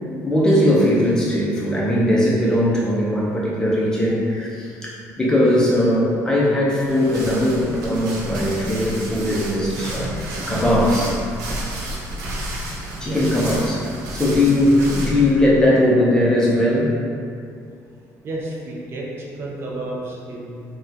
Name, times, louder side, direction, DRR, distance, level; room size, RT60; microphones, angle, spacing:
voice 1, 0.2-10.1 10.5-11.2 13.0-17.0, left 1 dB, 10° left, -6 dB, 0.5 m, -19 dB
sound 1, 6.8-15.3, right 1 dB, 85° right, 0.6 m, -30 dB
voice 2, 18.2-20.6, right 2 dB, 40° right, -3 dB, 0.4 m, -32 dB
3.6 x 2.2 x 2.6 m, 2.4 s
cardioid pair, 140°, 6 cm